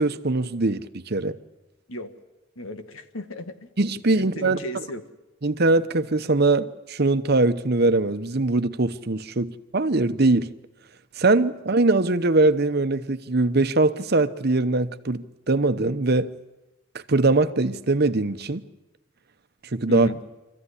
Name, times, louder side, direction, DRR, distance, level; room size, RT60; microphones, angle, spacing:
voice 1, 0.0-1.4 3.8-4.8 5.4-10.5 11.2-16.3 17.1-18.6 19.7-20.1, right 2 dB, 50° right, 0.9 m, -22 dB
voice 2, 2.5-3.7 4.2-5.0 9.3-9.4 19.9-20.2, left 1 dB, 90° left, 1.6 m, -35 dB
25.0 x 15.0 x 9.8 m
head